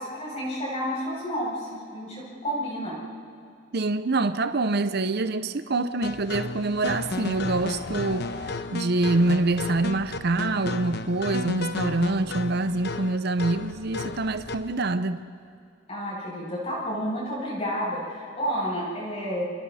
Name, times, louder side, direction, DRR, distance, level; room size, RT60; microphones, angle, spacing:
voice 1, 0.0-3.0 15.9-19.5, equal, 30° left, -6 dB, 7.5 m, -30 dB
voice 2, 3.7-8.3 8.7-15.2, right 2 dB, 50° right, 11 dB, 0.7 m, -25 dB
sound 1, 6.0-14.7, left 3 dB, 55° left, 1.0 m, -33 dB
29.5 x 26.5 x 4.2 m, 2.5 s
head